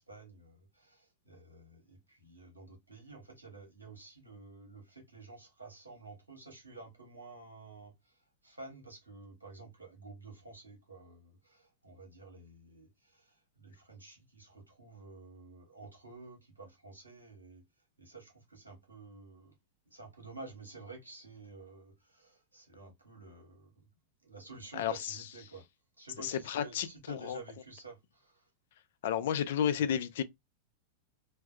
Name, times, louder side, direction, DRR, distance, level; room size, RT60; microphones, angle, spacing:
voice 1, 0.0-17.6 18.0-19.5 19.9-23.8 24.2-25.6 26.0-28.5, right 3 dB, 90° right, 1.1 m, -51 dB
voice 2, 24.7-25.2 26.2-27.4 29.0-30.2, left 9 dB, 65° left, 0.4 m, -32 dB
2.5 x 2.2 x 2.2 m
figure-of-eight pair, 95°, 0 cm